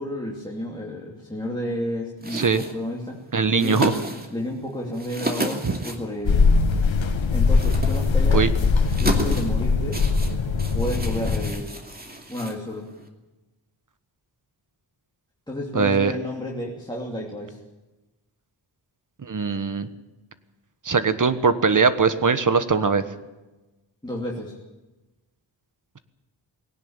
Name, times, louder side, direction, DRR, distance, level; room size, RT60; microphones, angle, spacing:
voice 1, 0.0-3.2 3.5-3.8 4.3-6.4 7.3-8.5 9.0-10.0 10.7-11.7 12.3-12.9 15.5-17.6 24.0-24.6, left 1 dB, 10° left, -4 dB, 2.9 m, -31 dB
sound 1, 2.2-13.1, right 1 dB, 20° right, 2.6 m, -34 dB
voice 2, 2.3-2.6 3.3-3.9 5.6-5.7 8.3-8.5 15.7-16.1 19.2-19.9 20.8-23.0, right 5 dB, 40° right, 11 dB, 1.4 m, -21 dB
sound 2, 6.3-11.5, left 4 dB, 80° left, 1.8 m, -21 dB
20.0 x 17.5 x 8.9 m, 1.1 s
wide cardioid pair, 150°, 46 cm